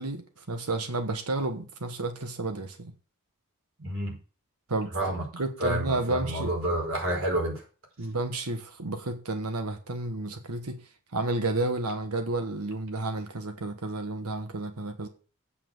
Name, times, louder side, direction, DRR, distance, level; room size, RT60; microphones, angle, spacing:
voice 1, 0.0-2.9 4.7-4.9 5.3-6.5 8.0-10.8 11.1-15.1, right 2 dB, 80° right, 1.2 m, -31 dB
voice 2, 3.8-4.2 4.9-5.3 5.6-7.6, right 1 dB, 60° right, 4.8 m, -29 dB
8.5 x 7.4 x 6.6 m
head